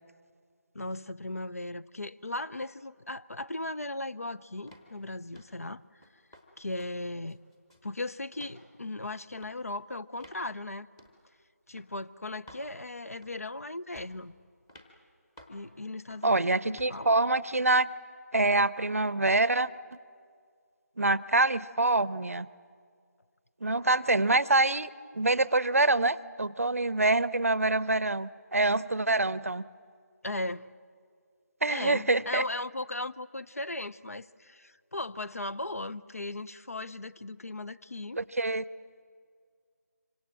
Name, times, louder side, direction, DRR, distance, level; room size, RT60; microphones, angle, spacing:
voice 1, 0.7-5.8 6.6-7.4 7.8-10.9 11.7-14.3 15.5-16.4 16.9-17.1 18.4-18.5 30.2-30.7 31.7-38.2, left 2 dB, 60° left, 0.7 m, -37 dB
sound 1, 4.7-4.9 5.3-5.6 6.0-6.5 6.8-6.9 7.3-7.9 8.3-8.6 9.3-9.6 10.2-10.4 11.0-11.2 11.8-11.9 12.5-12.7 13.2-13.5 14.0-14.2 14.7-14.9 15.4-15.6 16.1-16.3 16.8-17.0, equal, 10° left, 1.0 m, -53 dB
voice 2, 16.2-17.9 18.3-19.7 21.0-22.5 23.6-24.9 25.1-29.6 31.6-32.4 38.2-38.6, right 2 dB, 55° right, 0.7 m, -25 dB
26.0 x 24.5 x 7.5 m
figure-of-eight pair, 165°, 9 cm